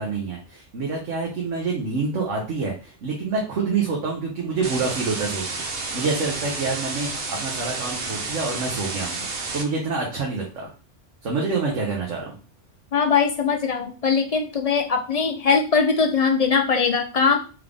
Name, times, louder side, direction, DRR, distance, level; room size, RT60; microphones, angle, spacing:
voice 1, 0.0-5.6 5.9-9.3 9.5-10.7 11.2-12.3, right 4 dB, 75° right, -2 dB, 1.3 m, -27 dB
sound 1, 4.6-9.6, right 3 dB, 55° right, 1.0 m, -30 dB
voice 2, 12.9-17.4, left 5 dB, 40° left, 4 dB, 0.5 m, -21 dB
3.7 x 3.7 x 3.4 m, 0.35 s
omnidirectional pair, 1.2 m